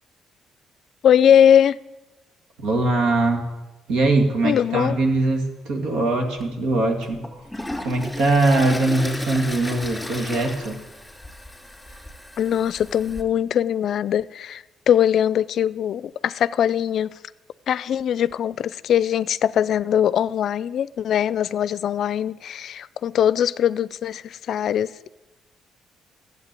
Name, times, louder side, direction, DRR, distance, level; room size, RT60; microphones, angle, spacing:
voice 1, 1.0-1.8 4.4-5.0 12.4-17.1 17.7-25.1, left 9 dB, 65° left, 0.4 m, -21 dB
voice 2, 2.6-3.4 3.9-7.2 7.8-10.8, right 2 dB, 80° right, 2.1 m, -21 dB
Toilet flush, 6.4-6.5 7.0-13.2, left 1 dB, 5° left, 2.6 m, -35 dB
12.5 x 7.9 x 8.3 m
supercardioid pair, 75°, 0 cm